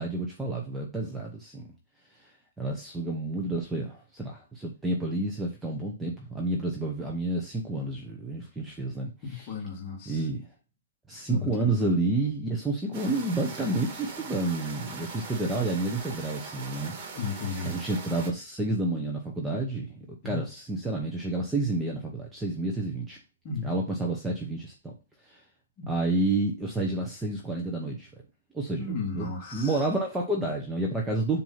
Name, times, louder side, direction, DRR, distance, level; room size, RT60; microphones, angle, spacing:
voice 1, 0.0-1.6 2.2-2.3 2.6-9.5 10.1-10.4 11.1-16.9 17.6-19.9 20.2-23.2 23.6-24.9 25.2-25.4 25.9-28.1 28.5-28.8 29.1-31.4, right 2 dB, 5° right, 0.8 m, -30 dB
voice 2, 9.2-10.2 11.3-11.7 17.2-17.8 20.2-20.5 23.4-23.7 25.8-25.9 28.8-29.8, left 4 dB, 30° left, 2.1 m, -34 dB
sound 1, 12.9-18.3, right 4 dB, 35° right, 1.5 m, -41 dB
7.4 x 2.7 x 5.7 m
hypercardioid pair, 165°, 0 cm